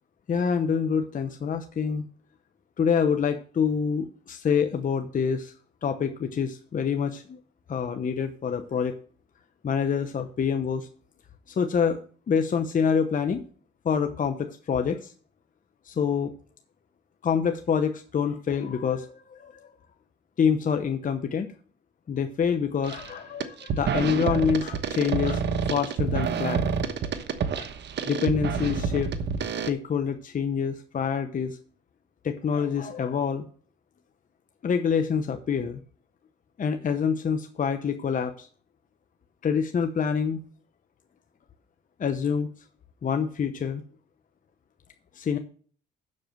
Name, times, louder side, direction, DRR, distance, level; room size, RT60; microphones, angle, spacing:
voice 1, 0.3-2.0 2.8-5.5 5.8-7.4 7.7-9.0 9.6-10.9 11.5-13.4 13.8-15.1 15.9-16.3 17.2-19.6 20.4-21.5 22.1-25.4 25.7-27.1 27.6-27.7 28.1-29.1 29.6-31.6 32.2-33.4 34.6-35.8 36.6-38.5 39.4-40.4 42.0-42.5 43.0-43.8 45.1-45.4, left 6 dB, 40° left, 6 dB, 0.9 m, -26 dB
sound 1, 22.8-23.1 23.4-29.7, right 6 dB, 60° right, 1.2 m, -28 dB
7.6 x 6.5 x 7.7 m, 0.43 s
cardioid pair, 90°, 20 cm